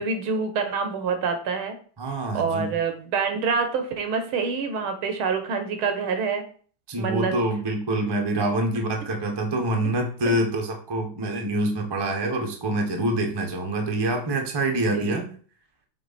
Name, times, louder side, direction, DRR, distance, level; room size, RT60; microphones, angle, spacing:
voice 1, 0.0-1.8 2.3-6.4 7.0-7.3 10.3-10.4 14.9-15.3, right 5 dB, 75° right, 7 dB, 1.9 m, -26 dB
voice 2, 2.0-2.8 6.9-15.2, right 1 dB, 15° right, 3 dB, 0.8 m, -26 dB
7.7 x 3.9 x 4.2 m, 0.43 s
omnidirectional pair, 2.4 m